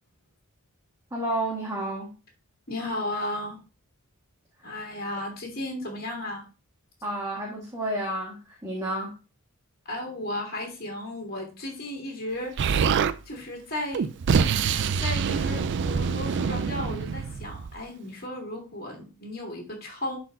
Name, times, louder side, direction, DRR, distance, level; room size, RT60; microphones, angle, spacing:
voice 1, 1.1-2.1 4.6-4.7 7.0-9.1, right 1 dB, 15° right, -3 dB, 1.5 m, -31 dB
voice 2, 2.7-3.6 4.6-6.5 9.9-14.1 15.0-20.2, left 1 dB, 45° left, -1 dB, 2.5 m, -34 dB
Explosion, 12.6-13.1 13.9-17.8, right 6 dB, 55° right, 0.4 m, -25 dB
11.5 x 4.4 x 2.6 m, 0.32 s
head